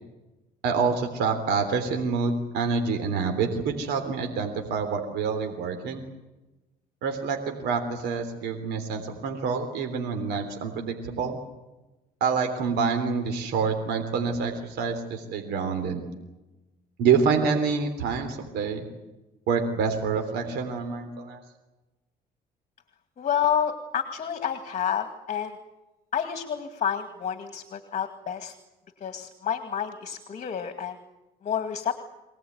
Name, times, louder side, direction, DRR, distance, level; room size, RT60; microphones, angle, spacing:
voice 1, 0.6-6.0 7.0-11.4 12.2-16.0 17.0-18.9 19.5-21.4, right 5 dB, 80° right, 5 dB, 3.5 m, -27 dB
voice 2, 23.2-25.6 26.1-28.5 29.0-31.0 31.4-32.0, left 8 dB, 45° left, 8 dB, 2.2 m, -29 dB
25.0 x 18.5 x 9.5 m, 1.0 s
cardioid pair, 110°, 17 cm